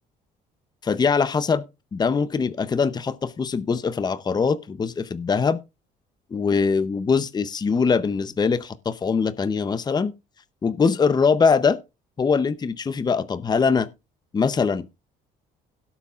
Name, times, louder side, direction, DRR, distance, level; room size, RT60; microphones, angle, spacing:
voice 1, 0.8-1.6 1.9-5.6 6.3-10.1 10.6-11.8 12.2-13.9 14.3-15.0, left 5 dB, 25° left, 0.7 m, -22 dB
17.5 x 8.2 x 2.4 m
cardioid pair, 110°, 17 cm